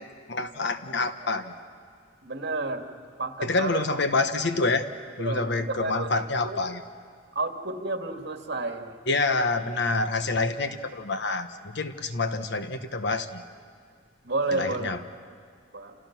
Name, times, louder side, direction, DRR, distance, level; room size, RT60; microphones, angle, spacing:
voice 1, 0.0-1.6 3.4-4.9 5.2-6.8 9.1-13.4 14.5-15.0, left 3 dB, 65° left, 9 dB, 1.3 m, -27 dB
voice 2, 2.2-2.9 3.2-3.8 5.2-6.1 6.4-6.6 7.3-9.0 14.2-14.9 15.7-15.9, right 3 dB, 60° right, 5 dB, 2.2 m, -30 dB
29.0 x 28.5 x 6.1 m, 2.2 s
head